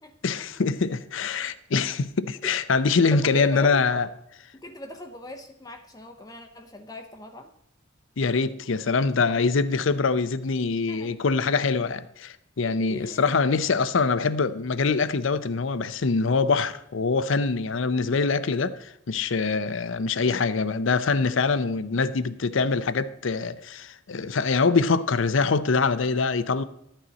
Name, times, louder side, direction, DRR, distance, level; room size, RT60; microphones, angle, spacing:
voice 1, 0.2-4.1 8.2-26.6, left 4 dB, 70° left, 0.6 m, -24 dB
voice 2, 3.1-4.1 4.6-7.5 10.9-11.1 12.6-13.3, left 1 dB, 20° left, 0.6 m, -40 dB
12.5 x 9.1 x 4.1 m
head